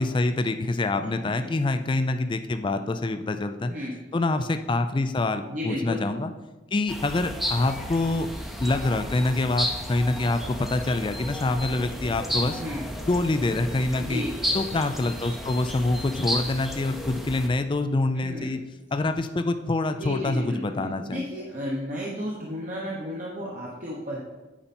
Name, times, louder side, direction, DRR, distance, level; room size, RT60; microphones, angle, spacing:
voice 1, 0.0-3.7 4.1-6.3 6.7-8.3 8.6-12.6 13.1-14.2 14.5-18.6 18.9-21.2, left 2 dB, 25° left, 9 dB, 0.4 m, -26 dB
voice 2, 1.0-1.5 3.7-3.9 5.5-6.0 12.6-12.8 14.0-14.3 18.2-18.5 19.9-24.2, left 1 dB, 40° right, -4 dB, 1.0 m, -33 dB
sound 1, 6.9-17.5, equal, ahead, 0.7 m, -33 dB
8.7 x 5.6 x 4.3 m, 1.1 s
head